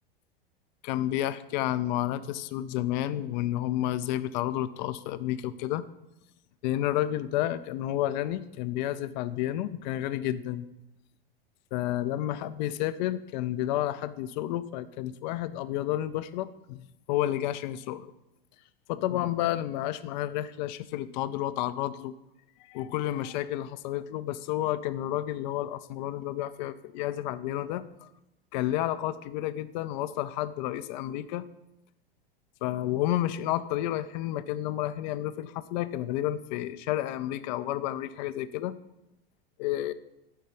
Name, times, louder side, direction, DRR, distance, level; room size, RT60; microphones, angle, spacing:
voice 1, 0.8-5.8 6.6-10.7 11.7-16.8 17.1-18.1 18.9-22.2 22.7-28.1 28.5-31.4 32.6-38.7 39.6-39.9, left 13 dB, 50° left, 14 dB, 0.5 m, -31 dB
5.6 x 4.5 x 5.3 m, 0.90 s
hypercardioid pair, 100°, 29 cm